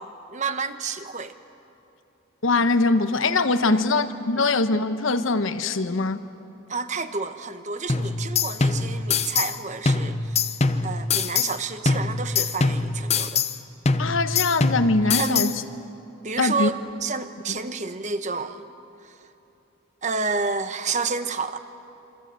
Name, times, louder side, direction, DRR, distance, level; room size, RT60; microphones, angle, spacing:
voice 1, 0.0-1.4 3.7-3.8 4.3-4.4 6.7-10.5 10.8-13.4 15.2-15.6 16.2-18.7 19.0-19.1 20.0-21.6, right 4 dB, 35° right, 10 dB, 1.0 m, -30 dB
voice 2, 2.4-6.2 14.0-15.5 16.4-16.7 17.5-17.6, left 3 dB, 75° left, 10 dB, 1.1 m, -22 dB
sound 1, 7.9-9.6 9.9-11.6 11.9-13.6 13.9-15.6, left 4 dB, 30° left, 0.7 m, -24 dB
28.0 x 25.0 x 7.6 m, 2.8 s
head